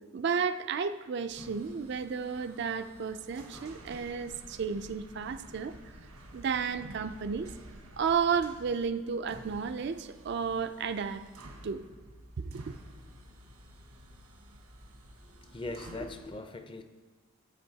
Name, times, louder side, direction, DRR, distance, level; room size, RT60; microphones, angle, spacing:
voice 1, 0.1-5.7 6.3-7.5 8.0-11.2 11.6-11.8 12.4-12.7, right 6 dB, 50° right, 10 dB, 0.4 m, -32 dB
sound 1, 1.3-16.3, right 1 dB, 85° right, 1.4 m, -51 dB
voice 2, 15.2-16.8, left 2 dB, 20° left, 8 dB, 0.5 m, -40 dB
17.0 x 7.8 x 2.8 m, 1.3 s
head